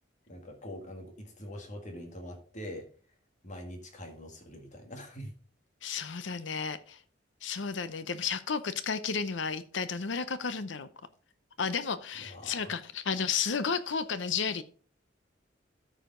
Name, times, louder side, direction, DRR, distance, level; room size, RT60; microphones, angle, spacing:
voice 1, 0.3-2.9 3.4-5.3 12.2-12.7, equal, 40° left, 3 dB, 1.9 m, -44 dB
voice 2, 5.8-7.0 7.4-10.9 11.6-14.6, left 6 dB, 75° left, 13 dB, 0.7 m, -32 dB
13.5 x 5.0 x 3.8 m, 0.43 s
head